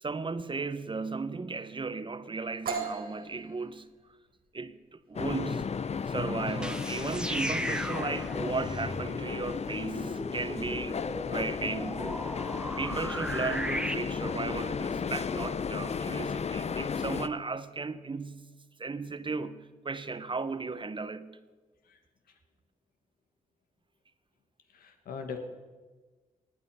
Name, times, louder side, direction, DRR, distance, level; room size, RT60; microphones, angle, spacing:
voice 1, 0.0-3.9 4.5-5.7 6.1-11.0 11.3-12.2 12.8-21.4, right 4 dB, 35° right, 0.8 m, -35 dB
sound 1, 2.7-10.3, right 5 dB, 85° right, 1.5 m, -42 dB
sound 2, 5.1-17.3, left 6 dB, 50° left, 0.6 m, -34 dB
sound 3, 6.5-13.9, equal, 5° right, 1.0 m, -37 dB
voice 2, 24.7-25.4, left 6 dB, 85° left, 1.4 m, -40 dB
17.5 x 9.0 x 5.5 m
supercardioid pair, 45°, 15 cm